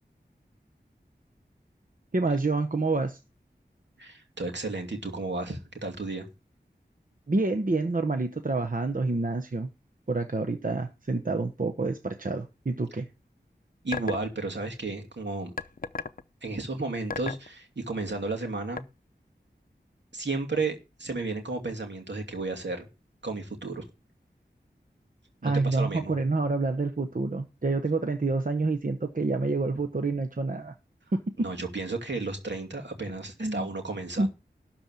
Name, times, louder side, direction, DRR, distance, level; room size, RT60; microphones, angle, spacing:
voice 1, 2.1-3.2 7.3-9.7 10.1-13.1 25.4-30.7 31.1-31.2 33.4-33.7 34.2-34.3, right 3 dB, 50° right, 1.0 m, -28 dB
voice 2, 4.0-6.3 13.8-15.5 16.4-18.8 20.1-22.9 23.2-23.9 25.4-26.2 31.4-34.3, right 3 dB, 75° right, 2.6 m, -33 dB
sound 1, 13.9-14.3 15.6-16.2 17.1-17.5 18.8-18.9, left 4 dB, 50° left, 0.7 m, -33 dB
12.5 x 4.4 x 7.5 m
wide cardioid pair, 55°, 18 cm